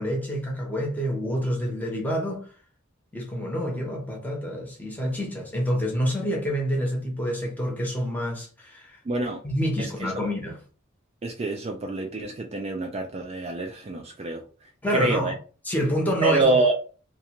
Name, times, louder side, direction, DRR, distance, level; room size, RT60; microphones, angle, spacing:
voice 1, 0.0-2.5 3.1-9.0 9.4-10.6 14.8-15.3 15.7-16.5, equal, 10° left, 0.7 m, -27 dB
voice 2, 9.1-9.4 10.2-10.3 11.2-14.4 14.9-15.3 16.2-16.7, right 2 dB, 30° right, 0.3 m, -26 dB
2.4 x 2.2 x 2.9 m
head